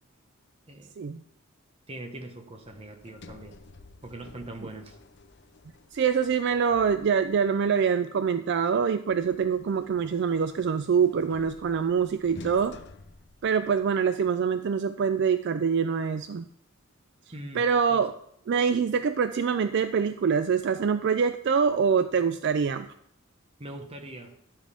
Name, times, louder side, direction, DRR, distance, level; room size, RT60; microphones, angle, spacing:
voice 1, 1.9-3.6 4.0-5.0 17.3-18.1 23.6-24.4, right 1 dB, 30° right, 5 dB, 1.0 m, -42 dB
Sliding door, 2.6-7.5 9.1-14.0, left 2 dB, 55° left, 0.7 m, -51 dB
voice 2, 5.9-12.7 13.4-16.4 17.5-18.1 18.5-22.9, right 6 dB, 55° right, 10 dB, 0.3 m, -25 dB
11.5 x 7.4 x 3.4 m, 0.71 s
head